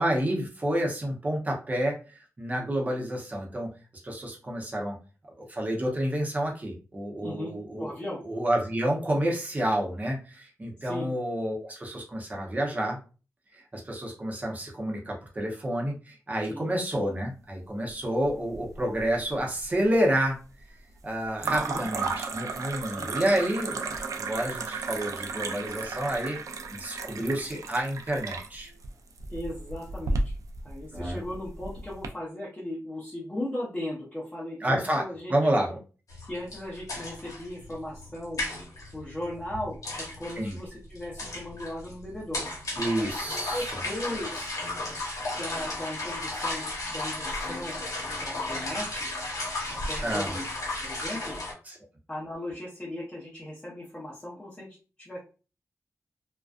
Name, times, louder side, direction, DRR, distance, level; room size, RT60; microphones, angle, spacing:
voice 1, 0.0-1.9 2.4-3.7 4.0-5.0 5.4-7.9 8.2-13.0 13.5-20.4 21.0-26.4 26.7-28.7 30.9-31.2 34.6-35.8 40.4-40.6 42.8-43.8 50.0-50.3 51.7-51.8, right 1 dB, 30° right, -1 dB, 0.7 m, -29 dB
voice 2, 7.2-7.5 7.8-8.2 10.8-11.1 16.5-16.7 21.4-21.9 22.8-23.1 29.3-30.3 30.6-35.3 36.3-38.4 38.9-42.5 43.3-44.5 44.9-45.0 45.3-47.8 48.2-49.1 49.7-50.5 50.8-51.4 52.1-55.2, left 1 dB, 15° left, -6 dB, 0.7 m, -37 dB
sound 1, 18.2-19.0 19.3-19.9 21.4-32.1, right 3 dB, 75° right, 0.3 m, -34 dB
sound 2, 36.1-51.5, left 2 dB, 75° left, 0.9 m, -35 dB
2.4 x 2.2 x 2.4 m, 0.35 s
wide cardioid pair, 110°, 6 cm